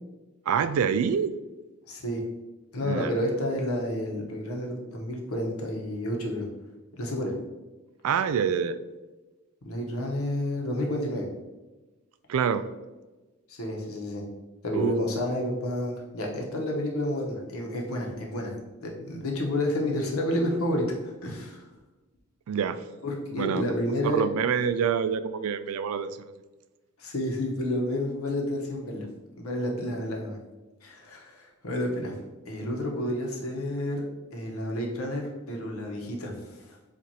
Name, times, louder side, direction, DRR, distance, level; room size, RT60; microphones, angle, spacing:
voice 1, 0.5-1.3 2.8-3.1 8.0-8.8 12.3-12.6 14.7-15.0 22.5-22.8 23.4-23.6 24.1-26.2, right 7 dB, 80° right, 12 dB, 0.3 m, -26 dB
voice 2, 1.9-2.2 2.7-6.5 6.9-7.3 9.6-11.3 13.5-14.2 14.6-21.7 23.0-24.2 27.0-29.1 29.3-30.4 30.8-32.1 32.5-34.0 34.3-36.8, left 1 dB, 85° left, 0 dB, 1.0 m, -30 dB
7.4 x 2.5 x 2.8 m, 1.2 s
head